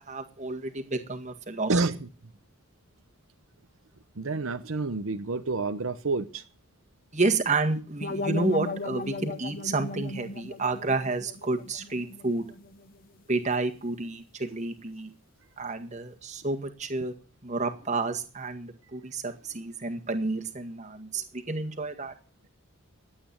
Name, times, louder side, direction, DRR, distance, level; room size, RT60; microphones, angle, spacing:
voice 1, 0.0-1.8 7.1-12.5 13.3-15.1 15.6-17.1 17.4-22.1, right 3 dB, 35° right, 5 dB, 1.8 m, -30 dB
voice 2, 1.7-2.1 4.2-6.4, right 3 dB, 80° right, 8 dB, 0.9 m, -28 dB
sound 1, 8.0-12.9, left 2 dB, 45° left, 0.9 m, -36 dB
12.0 x 8.6 x 8.6 m, 0.37 s
head